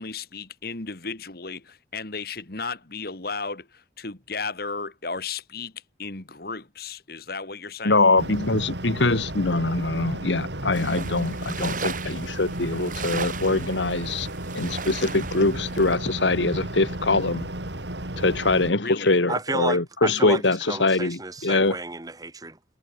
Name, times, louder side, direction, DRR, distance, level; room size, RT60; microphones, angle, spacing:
voice 1, 0.0-5.7 6.0-8.0 18.8-19.2, left 4 dB, 55° left, 2.2 m, -34 dB
voice 2, 7.8-14.3 14.5-17.5 18.2-21.8, left 2 dB, 85° left, 1.9 m, -23 dB
sound 1, 8.2-18.7, right 1 dB, 75° right, 5.3 m, -33 dB
sound 2, 10.7-16.0, right 5 dB, 45° right, 5.9 m, -36 dB
voice 3, 19.3-22.8, right 3 dB, 20° right, 1.3 m, -32 dB
head